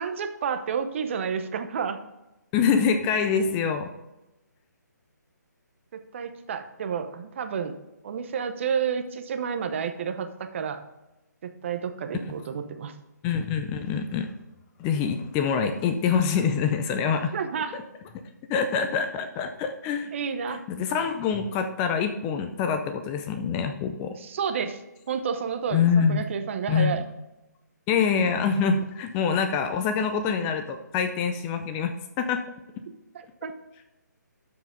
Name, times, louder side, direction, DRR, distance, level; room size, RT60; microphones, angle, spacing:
voice 1, 0.0-2.0 6.1-7.8 8.0-10.8 11.4-13.0 17.3-17.8 20.1-20.6 24.2-24.8 25.1-27.0 28.2-28.3 33.4-33.5, right 7 dB, 40° right, 8 dB, 0.8 m, -30 dB
voice 2, 2.5-3.9 13.2-14.3 14.8-17.3 17.7-17.8 18.5-20.1 20.5-24.2 25.7-26.2 26.7-27.1 27.9-32.4, left 6 dB, 15° left, 8 dB, 0.4 m, -25 dB
12.5 x 4.8 x 3.8 m, 1.0 s
hypercardioid pair, 155°, 10 cm